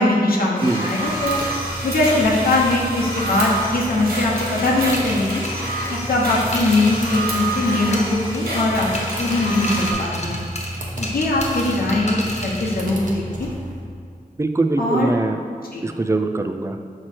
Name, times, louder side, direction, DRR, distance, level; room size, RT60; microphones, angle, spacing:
voice 1, 0.0-1.4 1.8-5.4 5.9-8.9 9.2-10.4 11.0-13.5 14.8-15.1 15.7-15.9, left 2 dB, 80° left, -4 dB, 0.9 m, -21 dB
sound 1, 0.6-9.9, right 1 dB, 85° right, 1.2 m, -28 dB
sound 2, 0.9-13.9, equal, 60° right, 1.1 m, -32 dB
sound 3, 4.4-7.6 7.9-8.6 8.9-12.8, left 1 dB, 45° left, 1.2 m, -32 dB
voice 2, 14.4-15.4 15.8-16.8, right 2 dB, 20° right, 7 dB, 0.4 m, -22 dB
6.0 x 4.4 x 4.5 m, 2.2 s
wide cardioid pair, 75°, 15 cm